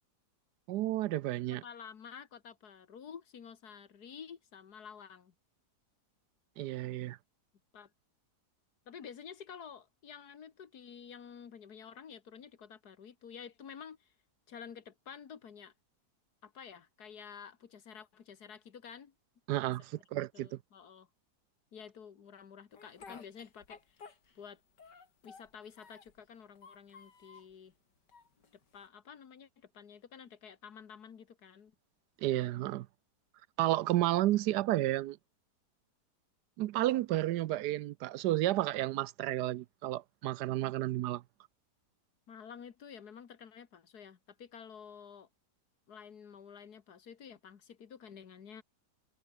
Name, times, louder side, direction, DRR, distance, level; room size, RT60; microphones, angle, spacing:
voice 1, 0.7-1.6 6.6-7.2 19.5-20.5 32.2-32.9 33.6-35.2 36.6-41.2, right 15 dB, 75° right, 1.1 m, -31 dB
voice 2, 1.5-5.3 7.7-7.9 8.9-14.1 14.5-15.7 16.4-19.1 20.1-21.1 21.7-24.6 25.2-27.7 28.7-31.8 42.3-45.3 45.9-48.6, left 7 dB, 65° left, 2.0 m, -50 dB
Speech, 22.7-24.5 24.8-26.2 26.6-27.5 28.1-28.9, left 5 dB, 85° left, 3.3 m, -54 dB
omnidirectional pair, 1.8 m